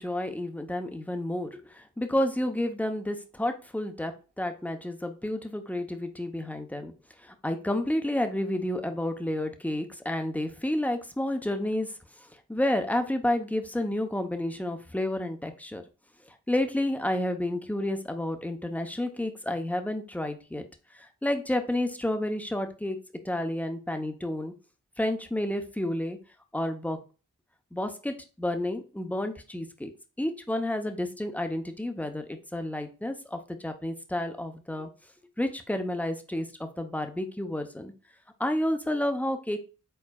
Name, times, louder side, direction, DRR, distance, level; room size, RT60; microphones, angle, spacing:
voice 1, 0.0-6.9 7.2-15.8 16.3-20.7 20.9-23.0 23.2-24.5 25.0-26.2 26.5-27.0 27.7-29.9 30.2-34.9 35.4-37.9 38.4-39.6, left 1 dB, 5° left, 6 dB, 0.7 m, -30 dB
4.6 x 3.9 x 2.3 m, 0.34 s
cardioid pair, 50°, 31 cm